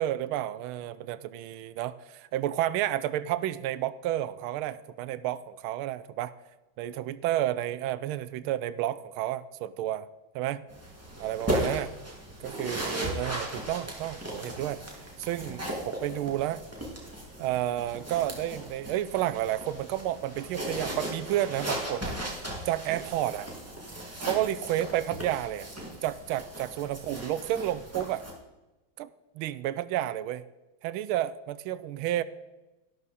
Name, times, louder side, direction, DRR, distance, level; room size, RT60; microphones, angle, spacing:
voice 1, 0.0-6.3 6.8-10.1 10.3-10.6 11.2-11.9 12.4-14.8 15.2-16.6 17.4-22.2 22.6-23.5 24.2-25.7 26.0-28.2 29.0-29.1 29.3-30.4 30.8-32.2, right 13 dB, 85° right, 16 dB, 1.4 m, -31 dB
sound 1, 10.7-28.3, right 1 dB, 5° right, 2.0 m, -37 dB
12.5 x 12.0 x 4.1 m, 1.1 s
omnidirectional pair, 2.3 m